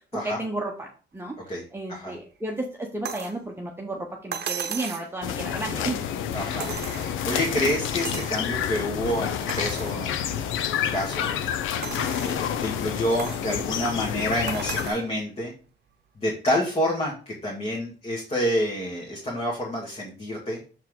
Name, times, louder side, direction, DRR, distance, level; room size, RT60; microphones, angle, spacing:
voice 1, 0.2-0.9 1.1-1.3 1.7-6.0, right 2 dB, 10° right, 0 dB, 1.0 m, -32 dB
sound 1, 3.0-3.4 4.3-5.1 6.6-7.4 8.0-8.4 8.9-9.0 9.5-10.0 10.6-10.7 11.8-12.4 13.2-13.5 14.5-15.1 16.3-16.4, right 8 dB, 55° right, 0.8 m, -35 dB
sound 2, 5.2-14.9, left 9 dB, 85° left, 0.6 m, -29 dB
voice 2, 6.3-6.7 7.0-11.3 11.9-15.5 16.2-20.6, equal, 30° left, -3 dB, 1.9 m, -28 dB
6.4 x 4.5 x 3.7 m, 0.39 s
cardioid pair, 90°, 20 cm